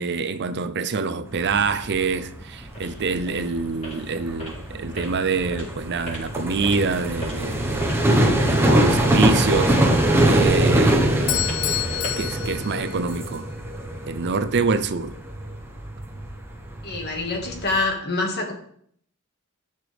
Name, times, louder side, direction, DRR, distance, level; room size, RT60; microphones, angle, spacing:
voice 1, 0.0-9.8 10.2-11.0 12.2-13.5 14.1-15.2, right 4 dB, 55° right, 0.6 m, -26 dB
sound 1, 1.3-17.8, right 1 dB, 10° right, 1.1 m, -23 dB
sound 2, 2.1-12.3, equal, 35° left, 4.4 m, -41 dB
Bell / Doorbell, 11.3-13.4, left 13 dB, 90° left, 0.7 m, -28 dB
voice 2, 16.8-18.5, left 3 dB, 50° left, 1.9 m, -26 dB
13.5 x 6.7 x 3.4 m
head